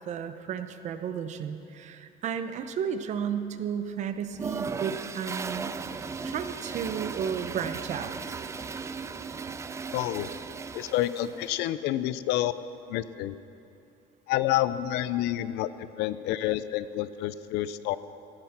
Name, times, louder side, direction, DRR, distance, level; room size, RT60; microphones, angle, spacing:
voice 1, 0.1-5.8 6.2-8.4, right 7 dB, 40° right, 9 dB, 0.8 m, -33 dB
Toilet flush, 4.3-11.6, right 5 dB, 15° right, 0.4 m, -36 dB
voice 2, 9.9-10.3 10.7-12.5 12.9-13.4 14.3-18.0, left 13 dB, 65° left, 15 dB, 0.6 m, -28 dB
18.5 x 12.5 x 5.9 m, 2.7 s
cardioid pair, 150°, 18 cm